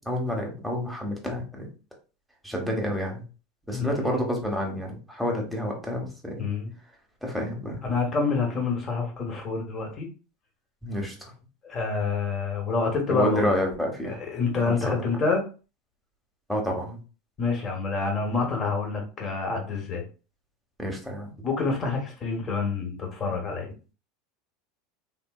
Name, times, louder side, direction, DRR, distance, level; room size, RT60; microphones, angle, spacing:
voice 1, 0.1-1.7 2.4-3.2 3.7-6.4 7.2-7.8 10.8-11.3 13.1-14.2 14.7-15.2 16.5-17.0 20.8-21.3, equal, ahead, 0 dB, 1.0 m, -29 dB
voice 2, 6.4-6.7 7.8-10.1 11.6-13.6 14.0-15.4 17.4-20.0 21.4-23.7, left 4 dB, 30° left, 2 dB, 1.1 m, -27 dB
3.5 x 2.6 x 2.3 m, 0.35 s
supercardioid pair, 125°, 0 cm